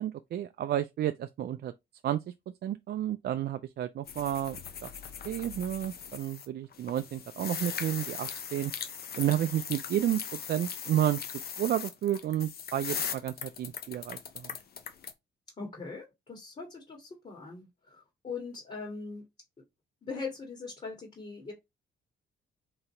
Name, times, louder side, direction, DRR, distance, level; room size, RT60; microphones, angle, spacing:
voice 1, 0.0-1.7 2.0-2.2 2.6-4.6 4.8-4.9 5.2-8.7 9.2-10.2 10.5-11.2 11.6-14.5, right 12 dB, 55° right, 0.4 m, -31 dB
sound 1, 4.1-6.5 6.7-15.1, left 7 dB, 50° left, 0.8 m, -39 dB
voice 2, 15.6-19.2 20.0-21.5, left 4 dB, 35° left, 2.1 m, -41 dB
3.9 x 2.9 x 4.4 m
cardioid pair, 90°, 20 cm